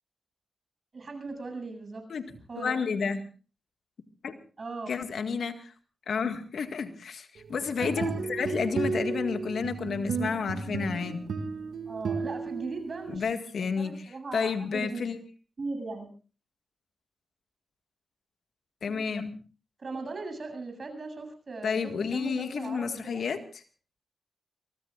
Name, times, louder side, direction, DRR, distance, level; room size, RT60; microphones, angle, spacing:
voice 1, 0.9-2.0 2.5-2.7 4.6-4.9 7.8-8.1 8.4-8.5 11.9-13.2 13.8-15.1 15.6-16.1 19.8-23.2, right 3 dB, 55° right, 6 dB, 8.0 m, -38 dB
voice 2, 2.6-3.2 4.2-4.4 4.9-5.7 6.1-11.2 13.1-15.2 18.8-19.4 21.6-23.6, left 5 dB, 75° left, 7 dB, 1.8 m, -31 dB
sound 1, 7.6-13.2, right 5 dB, 80° right, 2.0 m, -33 dB
24.0 x 23.5 x 2.5 m, 0.35 s
cardioid pair, 50°, 0 cm